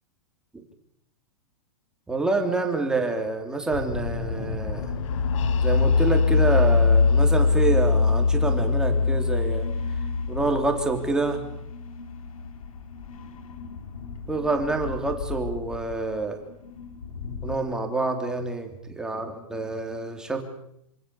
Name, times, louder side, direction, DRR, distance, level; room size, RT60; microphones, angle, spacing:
voice 1, 2.1-4.9 5.6-9.7 10.3-11.4 14.3-16.4 17.4-20.4, right 3 dB, 5° right, 3 dB, 3.4 m, -27 dB
sound 1, 3.7-17.6, left 5 dB, 85° left, 3.8 m, -37 dB
sound 2, 4.7-12.5, left 4 dB, 65° left, 2.3 m, -22 dB
27.0 x 25.5 x 7.2 m, 0.78 s
supercardioid pair, 165°, 18 cm